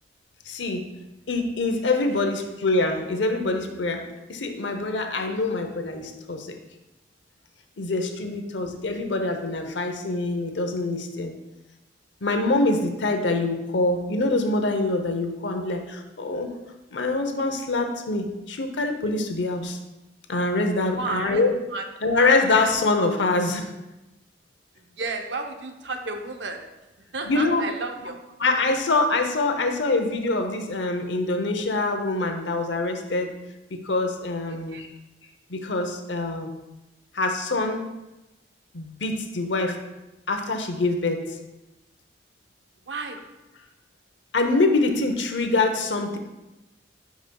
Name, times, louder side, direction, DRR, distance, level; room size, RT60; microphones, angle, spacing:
voice 1, 0.5-0.9 1.3-6.6 7.8-11.3 12.2-16.5 16.9-19.8 20.3-21.6 22.0-23.7 27.3-27.6 28.4-33.3 33.7-34.9 35.5-36.5 37.1-37.9 38.7-39.8 40.3-41.2 44.3-46.2, left 2 dB, 80° left, 6 dB, 0.7 m, -25 dB
voice 2, 21.0-21.4 21.7-21.8 24.8-26.6 27.1-28.2 28.6-28.7 34.5-34.8 42.9-43.2, right 3 dB, 75° right, 5 dB, 0.8 m, -32 dB
10.5 x 5.1 x 2.3 m, 1.0 s
head